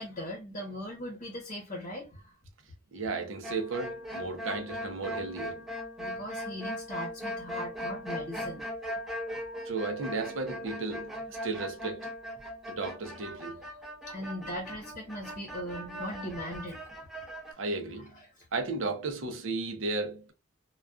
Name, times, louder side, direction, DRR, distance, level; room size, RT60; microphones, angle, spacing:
voice 1, 0.0-2.3 6.0-8.7 14.1-16.8 17.5-17.6 18.3-18.4, equal, 35° left, 0.8 m, -39 dB
voice 2, 2.9-5.7 9.6-12.1 12.7-13.6 17.6-18.1 18.5-20.3, right 3 dB, 65° right, 0.6 m, -34 dB
sound 1, 3.4-17.5, equal, ahead, 0.5 m, -39 dB
2.3 x 2.2 x 2.3 m
head